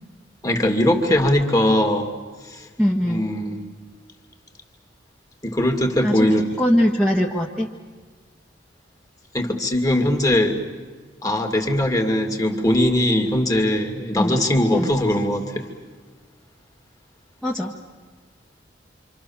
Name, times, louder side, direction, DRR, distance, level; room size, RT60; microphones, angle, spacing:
voice 1, 0.4-2.1 2.5-2.7 3.1-3.6 5.4-6.5 9.3-10.6 11.2-15.7, left 1 dB, 20° left, 4 dB, 2.5 m, -20 dB
voice 2, 2.8-3.3 6.0-7.7 14.2-14.4 14.7-14.9 17.4-17.7, equal, 5° left, -4 dB, 1.6 m, -21 dB
27.5 x 26.0 x 7.2 m, 1.6 s
head